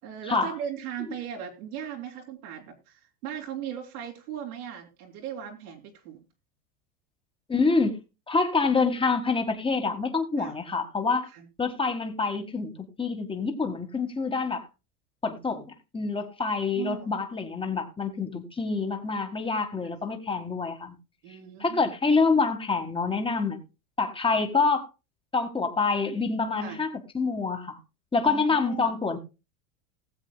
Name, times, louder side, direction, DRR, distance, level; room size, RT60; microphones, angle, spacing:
voice 1, 0.0-6.2 10.4-10.6 11.3-11.4 16.2-16.3 16.6-17.1 19.9-20.0 21.2-21.9 26.6-26.8 28.3-28.9, right 9 dB, 80° right, 0 dB, 3.0 m, -38 dB
voice 2, 7.5-8.0 8.3-11.3 11.6-12.7 13.0-14.7 15.2-20.9 21.6-23.6 24.0-24.9 25.3-27.8 28.1-29.2, left 4 dB, 10° left, 6 dB, 1.6 m, -26 dB
19.5 x 7.4 x 2.2 m, 0.27 s
supercardioid pair, 120°, 44 cm